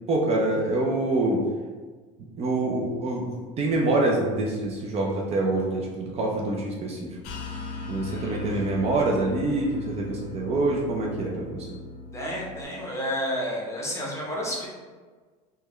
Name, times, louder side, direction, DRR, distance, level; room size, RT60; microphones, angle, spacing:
voice 1, 0.1-1.4 2.4-7.2 7.9-11.8, right 2 dB, 35° right, -2 dB, 0.5 m, -26 dB
sound 1, 7.2-12.6, left 3 dB, 50° left, 0.6 m, -38 dB
voice 2, 8.1-8.4 12.1-14.7, equal, 15° left, -4 dB, 0.8 m, -31 dB
3.4 x 2.2 x 3.0 m, 1.4 s
supercardioid pair, 120°, 17 cm